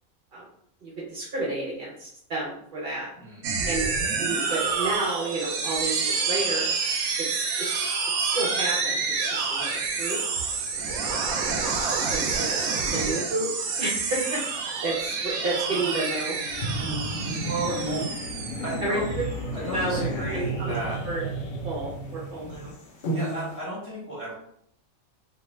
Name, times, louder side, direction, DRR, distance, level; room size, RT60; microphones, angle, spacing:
voice 1, 0.8-3.1 3.7-3.9 4.2-6.7 7.2-7.8 8.2-10.2 12.1-12.5 12.9-13.5 13.8-16.4 17.6-18.0 18.8-19.2 19.7-20.7 21.0-21.3 21.6-22.7, right 2 dB, 55° right, -4 dB, 0.7 m, -31 dB
voice 2, 3.2-3.5 17.4-17.7 18.6-19.0 19.5-21.0 23.1-24.3, right 2 dB, 15° left, -6 dB, 0.8 m, -34 dB
sound 1, 3.4-19.2, right 5 dB, 85° right, 1.0 m, -28 dB
sound 2, 8.5-23.6, equal, 55° left, 0.7 m, -40 dB
sound 3, 16.5-22.7, right 1 dB, 75° left, 1.0 m, -33 dB
2.5 x 2.4 x 3.0 m, 0.69 s
omnidirectional pair, 1.5 m